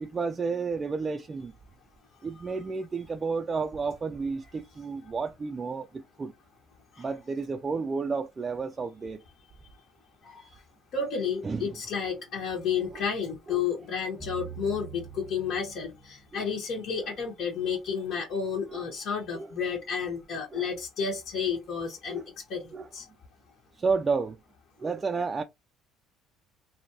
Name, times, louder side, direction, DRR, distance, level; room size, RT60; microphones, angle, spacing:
voice 1, 0.1-1.5 2.2-6.3 7.0-9.2 11.4-11.7 12.9-13.0 13.5-13.6 16.3-16.5 17.0-17.1 18.7-18.8 19.3-19.6 20.5-20.7 22.1-22.3 22.7-22.9 23.8-24.4 24.8-25.4, right 4 dB, 25° right, 0.3 m, -31 dB
voice 2, 10.9-22.2 22.5-23.1, left 6 dB, 60° left, 1.2 m, -31 dB
sound 1, 14.2-16.4, right 7 dB, 15° left, 1.0 m, -44 dB
3.1 x 2.6 x 2.6 m
cardioid pair, 110°, 0 cm